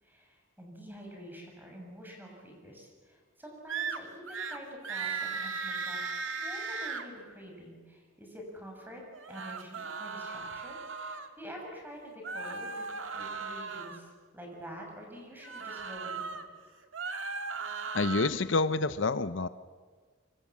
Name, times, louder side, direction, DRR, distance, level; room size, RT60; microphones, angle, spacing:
voice 1, 0.0-6.0 6.4-9.0 9.3-10.8 11.0-12.9 13.1-16.6, equal, 10° right, 1 dB, 6.7 m, -47 dB
sound 1, 3.7-4.0 4.3-4.6 4.8-7.0 9.1-11.3 12.2-14.0 15.4-16.4 16.8-18.3, right 5 dB, 80° right, 1.9 m, -37 dB
voice 2, 17.9-19.5, left 3 dB, 70° left, 13 dB, 0.7 m, -28 dB
26.0 x 24.0 x 7.4 m, 1.5 s
head